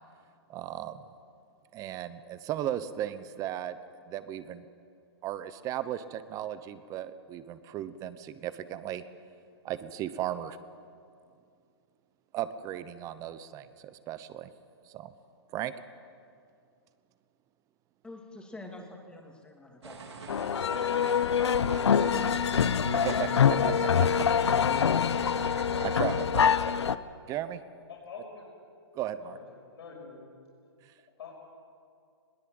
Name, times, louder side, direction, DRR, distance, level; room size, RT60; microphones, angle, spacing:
voice 1, 0.5-1.0 1.7-3.8 4.1-4.6 5.2-9.0 9.6-10.6 12.3-14.5 14.9-15.1 15.5-15.7 23.0-23.6 24.0-24.2 25.1-25.4 25.8-26.6 27.3-27.6 28.9-29.4 30.8-30.9, right 12 dB, 25° right, 13 dB, 0.9 m, -36 dB
voice 2, 18.0-20.1, left 2 dB, 5° left, 1 dB, 2.7 m, -48 dB
sound 1, 19.8-26.3, right 3 dB, 85° right, 4.0 m, -42 dB
sound 2, 20.3-27.0, left 7 dB, 85° left, 0.8 m, -25 dB
voice 3, 27.9-28.4 29.2-29.4 29.7-30.3 31.2-31.4, left 6 dB, 65° left, -2 dB, 6.0 m, -45 dB
21.0 x 19.5 x 8.0 m, 2.3 s
hypercardioid pair, 140°, 14 cm